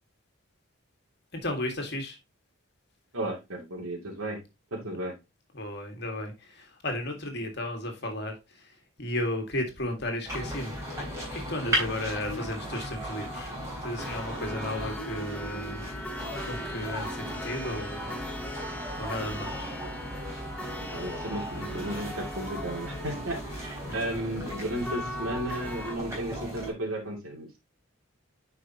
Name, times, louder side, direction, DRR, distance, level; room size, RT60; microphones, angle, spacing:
voice 1, 1.3-2.2 5.5-16.0 16.4-18.3 19.0-19.7 23.8-24.2, left 1 dB, 50° left, 1.9 m, -34 dB
voice 2, 3.1-4.4 4.7-5.1 20.9-27.6, right 1 dB, 90° right, 2.7 m, -34 dB
sound 1, 10.3-26.7, equal, 15° right, 3.8 m, -36 dB
sound 2, 14.0-26.0, left 1 dB, 5° left, 0.9 m, -40 dB
9.9 x 5.1 x 2.9 m
head